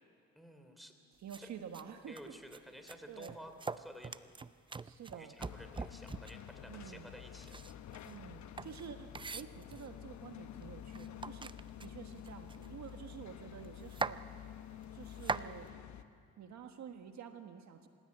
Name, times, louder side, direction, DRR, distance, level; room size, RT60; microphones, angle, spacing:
voice 1, 0.3-0.9 1.4-1.5 2.1-4.3 5.0-7.9, equal, ahead, 6 dB, 3.1 m, -53 dB
voice 2, 1.2-2.3 3.1-3.4 4.8-5.4 6.7-7.1 8.0-11.5 11.8-14.2 14.9-15.7 16.4-17.9, right 8 dB, 65° right, 6 dB, 1.5 m, -49 dB
sound 1, 1.3-1.4 1.7-1.8 2.2-2.6 2.9-6.5 7.4-10.0 10.6-10.7 10.9-13.0 13.3-13.4 13.6-14.2 14.8-15.5, right 4 dB, 15° right, 0.5 m, -42 dB
sound 2, 5.4-16.0, left 10 dB, 65° left, 1.1 m, -50 dB
26.0 x 16.5 x 9.8 m, 2.3 s
cardioid pair, 90°, 30 cm